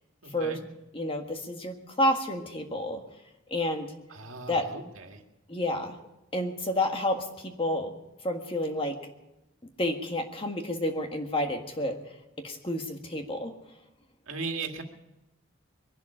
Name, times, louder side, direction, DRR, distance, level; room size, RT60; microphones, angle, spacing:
voice 1, 0.2-0.6 4.1-5.2 14.3-14.8, right 4 dB, 75° right, 4 dB, 2.0 m, -37 dB
voice 2, 0.9-3.0 3.5-3.9 4.5-4.7 5.5-6.0 6.3-7.9 8.2-9.0 9.8-12.0 12.4-13.5, left 1 dB, 25° left, 4 dB, 1.6 m, -30 dB
22.5 x 11.5 x 4.9 m, 0.93 s
head